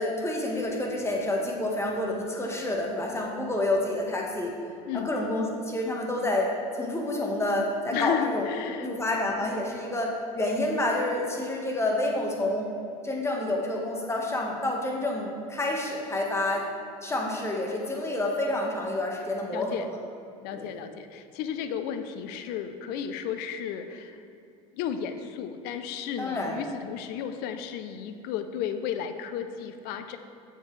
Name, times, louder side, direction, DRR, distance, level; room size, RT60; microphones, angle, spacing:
voice 1, 0.0-4.6 4.9-8.5 8.8-12.7 13.0-16.6 17.0-19.9 20.5-20.7 26.2-26.6, left 1 dB, 15° left, 0 dB, 1.4 m, -28 dB
voice 2, 7.9-9.0 19.5-19.9 20.4-24.2 24.7-30.2, left 8 dB, 60° left, 9 dB, 0.6 m, -33 dB
7.4 x 7.3 x 3.3 m, 2.7 s
hypercardioid pair, 85°, 18 cm